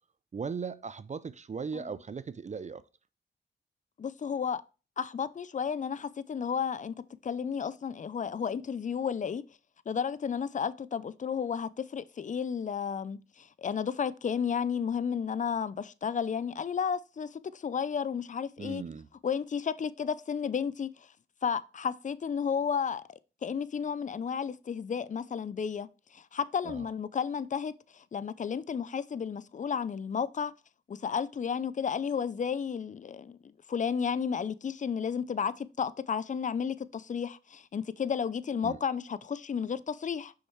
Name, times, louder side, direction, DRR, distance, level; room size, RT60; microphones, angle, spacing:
voice 1, 0.3-2.8 18.6-19.1 26.6-26.8 38.6-38.8, right 5 dB, 35° right, 0.5 m, -38 dB
voice 2, 4.0-4.6 5.0-7.0 7.2-9.4 9.9-18.8 19.2-21.1 21.4-30.5 30.9-33.4 33.7-40.3, left 7 dB, 40° left, 0.5 m, -32 dB
6.5 x 5.5 x 3.2 m
supercardioid pair, 50°, 20 cm